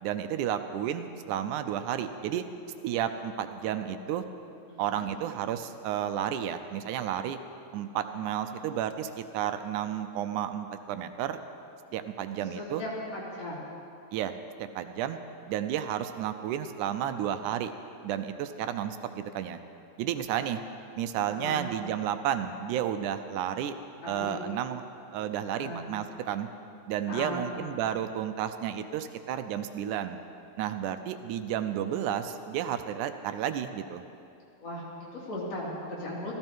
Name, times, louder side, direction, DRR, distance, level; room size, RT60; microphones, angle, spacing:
voice 1, 0.0-2.4 2.8-4.2 4.8-7.4 7.7-11.4 11.9-12.8 14.1-15.2 15.5-17.7 18.0-19.6 20.0-20.6 21.0-23.7 24.1-24.8 25.1-26.5 26.9-30.2 30.6-34.0, right 10 dB, 90° right, 9 dB, 2.1 m, -32 dB
voice 2, 4.7-5.1 12.6-13.7 21.3-21.7 24.0-24.4 25.5-25.9 27.1-27.5 34.6-36.4, left 1 dB, 60° left, -6 dB, 3.8 m, -37 dB
15.0 x 15.0 x 4.6 m, 2.6 s
omnidirectional pair, 3.4 m